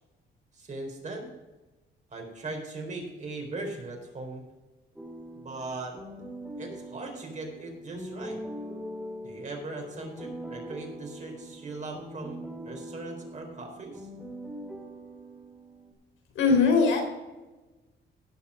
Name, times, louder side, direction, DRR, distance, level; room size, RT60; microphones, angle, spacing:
voice 1, 0.5-1.3 2.1-4.4 5.3-6.0 6.6-8.4 9.2-12.4 12.7-14.1, right 2 dB, 35° right, 1 dB, 4.2 m, -39 dB
sound 1, 5.0-15.9, equal, 5° right, 2.3 m, -42 dB
voice 2, 16.4-17.0, left 4 dB, 75° left, 2 dB, 3.6 m, -20 dB
17.0 x 5.8 x 5.0 m, 1.1 s
cardioid pair, 90°, 20 cm